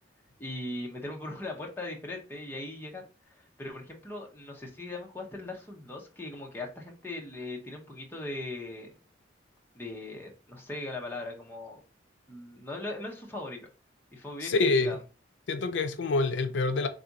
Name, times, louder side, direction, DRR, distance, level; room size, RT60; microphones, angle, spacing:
voice 1, 0.4-8.9 9.7-11.8 12.3-13.6 14.1-15.0, left 2 dB, 10° left, 0.7 m, -39 dB
voice 2, 14.4-15.0 15.5-16.9, left 3 dB, 75° left, 0.4 m, -26 dB
3.4 x 2.5 x 3.9 m
head